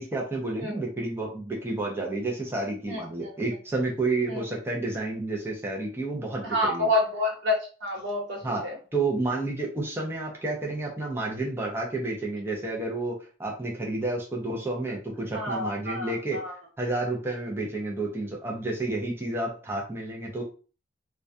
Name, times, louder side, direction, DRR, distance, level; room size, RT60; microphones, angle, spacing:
voice 1, 0.0-6.9 8.4-8.6 8.9-16.4 16.8-20.4, right 2 dB, 15° right, -2 dB, 0.5 m, -30 dB
voice 2, 6.5-8.8 15.3-16.5, left 1 dB, 90° right, -2 dB, 1.0 m, -28 dB
2.2 x 2.2 x 2.6 m, 0.37 s
head